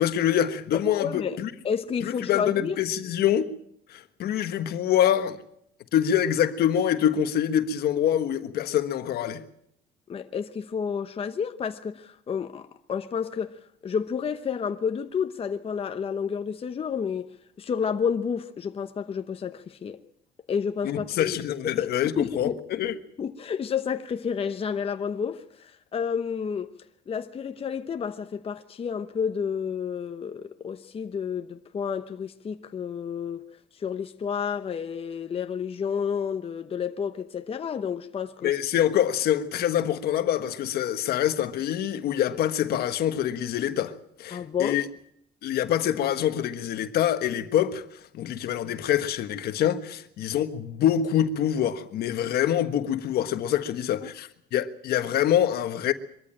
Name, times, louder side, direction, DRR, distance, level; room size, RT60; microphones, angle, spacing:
voice 1, 0.0-1.5 2.0-3.5 3.9-5.4 5.9-9.4 20.8-23.0 38.4-44.8 45.4-55.9, left 10 dB, 70° left, 1.4 m, -25 dB
voice 2, 0.7-1.4 1.6-2.8 10.1-17.3 17.6-20.0 20.5-21.4 21.8-21.9 22.2-22.6 23.2-26.7 27.1-33.4 33.7-38.5 44.3-44.8 54.0-54.1, left 7 dB, 35° left, 0.9 m, -30 dB
23.0 x 13.5 x 8.9 m
cardioid pair, 110°, 17 cm